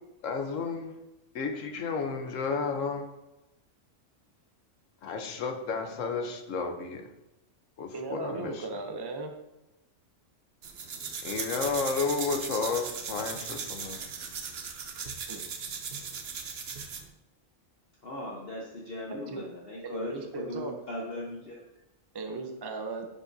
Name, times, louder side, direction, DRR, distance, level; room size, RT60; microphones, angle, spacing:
voice 1, 0.2-0.9 1.3-3.0 5.0-7.0 7.8-8.6 11.2-14.1, left 5 dB, 85° left, 5 dB, 1.2 m, -32 dB
voice 2, 7.9-9.3 15.3-15.5 19.1-19.4 19.8-20.7 22.1-23.1, right 3 dB, 30° right, 4 dB, 0.5 m, -37 dB
sound 1, 10.6-17.1, right 6 dB, 60° right, 0.9 m, -38 dB
voice 3, 18.0-21.6, left 1 dB, 50° left, -4 dB, 1.2 m, -39 dB
10.0 x 5.3 x 2.7 m, 0.94 s
omnidirectional pair, 1.3 m